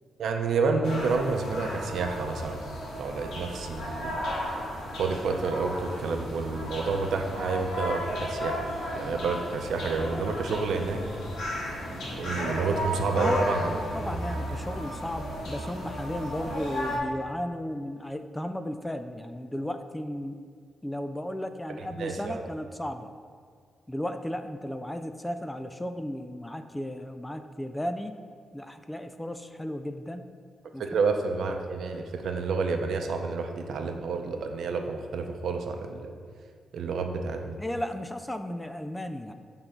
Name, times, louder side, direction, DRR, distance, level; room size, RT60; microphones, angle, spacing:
voice 1, 0.2-2.6 2.9-4.2 5.0-8.6 9.0-11.0 12.2-13.8 21.8-22.4 30.8-36.1 36.7-37.6, right 4 dB, 75° right, 4 dB, 0.7 m, -29 dB
sound 1, 0.8-17.0, equal, 90° left, 1.8 m, -34 dB
voice 2, 13.1-20.4 20.8-23.1 23.9-28.2 28.5-30.3 30.7-30.8 37.6-39.3, left 1 dB, 10° left, 8 dB, 0.3 m, -34 dB
7.9 x 3.8 x 5.7 m, 2.1 s
cardioid pair, 125°, 0 cm